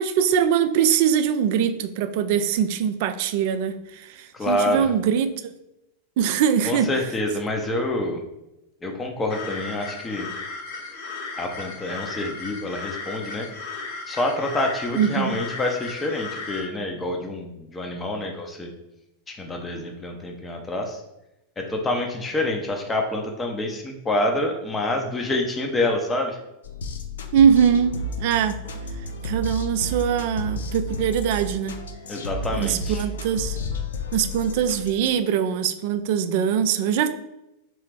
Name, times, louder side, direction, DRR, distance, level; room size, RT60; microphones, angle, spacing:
voice 1, 0.0-5.5 6.2-6.9 15.0-15.3 27.3-28.6 29.2-31.7 32.5-33.6 34.1-37.1, right 8 dB, 50° right, 11 dB, 0.3 m, -22 dB
voice 2, 4.3-4.9 6.6-8.2 8.8-10.3 11.4-13.5 14.1-18.7 19.3-21.0 21.6-26.4 32.1-33.0, left 1 dB, 15° left, 2 dB, 0.6 m, -27 dB
sound 1, 9.3-16.6, left 3 dB, 50° left, 0.9 m, -35 dB
sound 2, 26.6-35.1, left 1 dB, 65° left, 0.4 m, -32 dB
3.2 x 3.0 x 4.6 m, 0.91 s
figure-of-eight pair, 90°, 0 cm